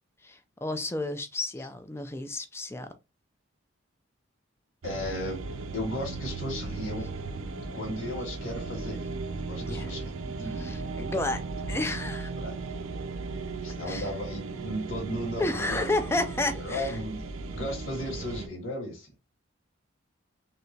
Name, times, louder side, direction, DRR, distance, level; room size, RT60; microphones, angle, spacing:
voice 1, 0.2-2.9 9.6-9.9 10.6-12.3 13.9-14.1 15.4-17.0, left 2 dB, 10° left, 0.4 m, -31 dB
voice 2, 4.8-5.4 5.7-7.1 7.7-10.7 12.4-12.5 13.6-17.2 17.5-19.2, left 1 dB, 85° left, 1.6 m, -35 dB
sound 1, 4.8-18.5, right 3 dB, 85° right, 0.5 m, -36 dB
3.3 x 2.9 x 2.7 m
head